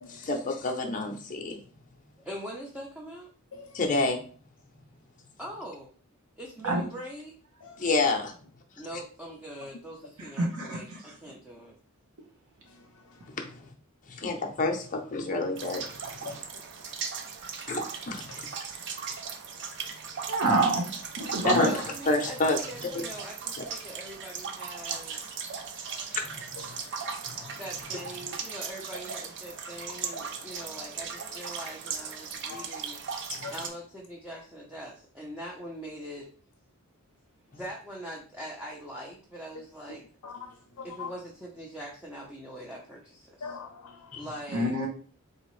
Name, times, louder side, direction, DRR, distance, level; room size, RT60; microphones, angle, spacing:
voice 1, 0.1-1.6 3.7-4.2 7.8-8.3 13.4-13.5 14.1-15.8 16.1-16.4 17.7-17.8 18.1-18.5 21.4-21.7 22.1-22.6 22.9-23.0 26.1-26.4 33.3-33.5 44.1-44.2, left 3 dB, 35° left, 0.6 m, -28 dB
voice 2, 2.2-3.3 5.4-5.9 6.4-7.3 8.8-11.7 21.5-25.5 27.6-33.0 33.5-36.3 37.5-40.0 40.8-43.6 44.2-44.8, equal, 5° right, 0.6 m, -42 dB
voice 3, 10.2-11.0 20.3-20.8 21.2-21.7 44.5-44.9, right 2 dB, 85° right, 1.1 m, -26 dB
sound 1, 15.6-33.7, right 6 dB, 55° right, 0.5 m, -38 dB
voice 4, 40.2-41.1 43.4-44.1, left 6 dB, 85° left, 0.5 m, -42 dB
3.7 x 2.9 x 3.1 m
head